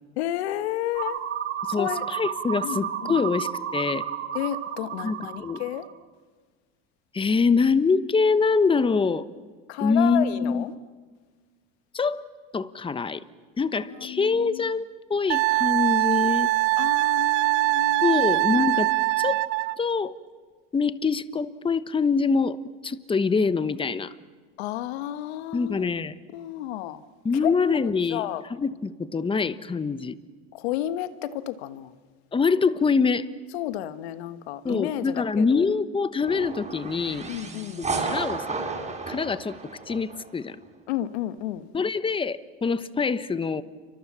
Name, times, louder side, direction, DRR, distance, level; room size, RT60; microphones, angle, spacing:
voice 1, 0.2-1.2 1.7-2.1 2.6-3.2 4.3-5.8 9.7-10.7 14.0-14.7 16.8-18.2 24.6-25.9 26.3-27.0 27.4-27.5 28.1-28.4 30.5-31.9 33.5-35.7 37.3-37.8 40.9-41.7, left 13 dB, 90° left, 1.5 m, -31 dB
sound 1, 0.9-6.0, right 9 dB, 40° right, 2.3 m, -32 dB
voice 2, 1.7-4.0 5.0-5.6 7.1-9.3 9.8-10.6 11.9-12.2 12.5-13.2 13.6-16.5 18.0-18.9 19.2-19.5 19.8-20.1 20.7-24.1 25.5-26.1 27.2-30.2 32.3-33.3 34.6-37.3 37.8-38.6 39.1-39.5 39.9-40.6 41.7-43.6, left 4 dB, 15° left, 1.1 m, -24 dB
Wind instrument woodwind instrument, 15.3-19.8, right 21 dB, 70° right, 0.8 m, -22 dB
sound 2, 36.2-40.3, right 3 dB, 20° right, 6.9 m, -33 dB
29.0 x 24.5 x 7.4 m
supercardioid pair, 110°, 31 cm